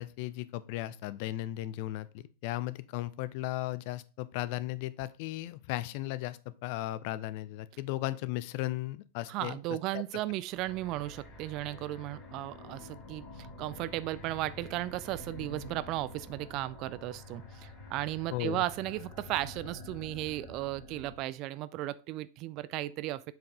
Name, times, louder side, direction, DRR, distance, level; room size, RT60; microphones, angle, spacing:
voice 1, 0.0-9.6 9.9-10.0 18.3-18.6, left 16 dB, 45° left, 0.4 m, -36 dB
voice 2, 9.3-23.2, right 16 dB, 40° right, 0.3 m, -35 dB
sound 1, 10.5-21.3, left 2 dB, 30° left, 3.4 m, -48 dB
7.6 x 4.7 x 3.6 m
figure-of-eight pair, 90°, 0 cm